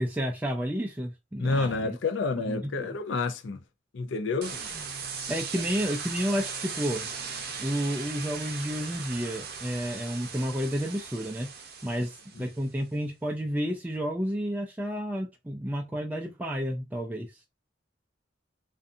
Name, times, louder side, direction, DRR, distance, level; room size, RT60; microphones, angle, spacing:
voice 1, 0.0-2.0 2.5-3.0 5.3-7.1 7.6-11.5 11.8-17.4, equal, 10° right, 0.3 m, -31 dB
voice 2, 1.4-3.6 3.9-4.6 12.4-12.5, left 3 dB, 85° left, 0.5 m, -29 dB
sound 1, 4.4-12.6, right 5 dB, 55° right, 0.6 m, -38 dB
2.5 x 2.4 x 2.6 m
head